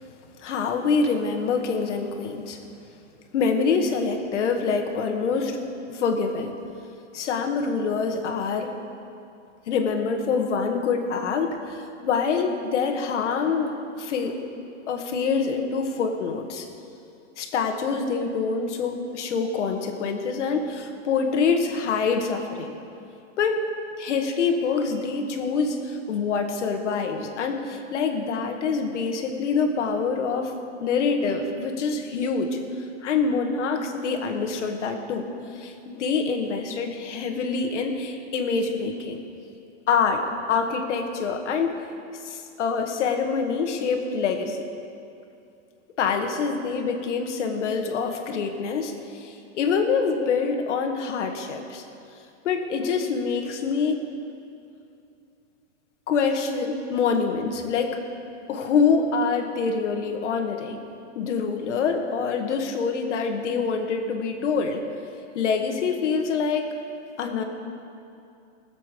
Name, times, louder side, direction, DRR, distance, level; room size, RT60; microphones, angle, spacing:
voice 1, 0.4-2.6 3.3-5.6 5.9-6.5 7.1-8.7 9.7-14.3 14.9-16.7 17.4-22.7 23.4-23.6 24.0-30.5 30.8-32.6 33.0-39.2 39.9-40.2 40.5-41.7 42.2-44.6 46.0-51.8 52.4-54.1 56.1-58.0 58.5-60.8 61.2-64.8 65.3-66.7 67.2-67.4, left 5 dB, 75° left, 4 dB, 1.9 m, -25 dB
20.0 x 7.5 x 6.8 m, 2.6 s
supercardioid pair, 150°, 36 cm